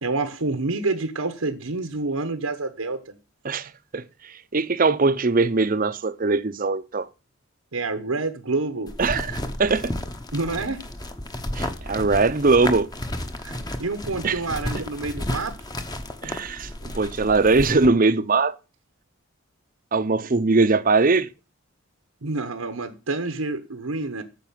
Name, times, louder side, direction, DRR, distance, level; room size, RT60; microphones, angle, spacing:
voice 1, 0.0-3.2 7.7-9.0 10.3-10.8 13.4-15.6 22.2-24.2, right 3 dB, 85° right, 1.1 m, -28 dB
voice 2, 3.4-4.0 4.5-7.1 9.0-9.9 11.5-12.9 14.2-14.4 16.2-18.6 19.9-21.3, right 3 dB, 40° right, 0.6 m, -21 dB
sound 1, 8.9-17.9, left 1 dB, 20° left, 0.9 m, -32 dB
9.2 x 6.8 x 7.3 m
head